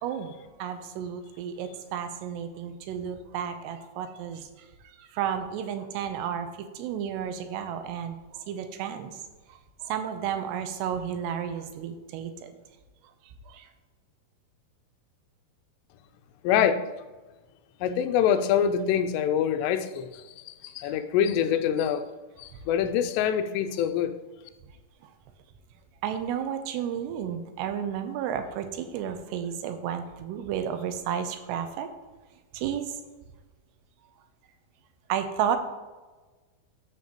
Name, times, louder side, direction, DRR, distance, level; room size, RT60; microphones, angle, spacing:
voice 1, 0.0-4.5 5.0-6.5 6.8-9.2 9.8-12.5 13.5-13.7 20.9-21.0 26.0-31.9 32.5-32.9 35.1-35.6, right 8 dB, 85° right, 8 dB, 2.8 m, -32 dB
voice 2, 16.4-16.8 17.8-22.1 22.4-24.1, left 9 dB, 90° left, 9 dB, 2.8 m, -25 dB
12.5 x 5.6 x 3.0 m, 1.2 s
omnidirectional pair, 4.9 m